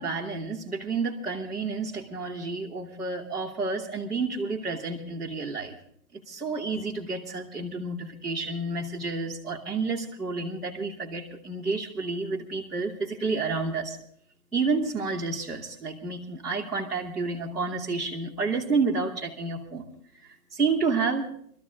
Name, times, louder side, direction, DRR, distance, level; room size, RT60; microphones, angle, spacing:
voice 1, 0.0-5.8 6.1-14.0 14.5-19.9 20.2-21.3, right 4 dB, ahead, -14 dB, 0.9 m, -30 dB
23.0 x 13.5 x 3.5 m, 0.63 s
hypercardioid pair, 170°, 46 cm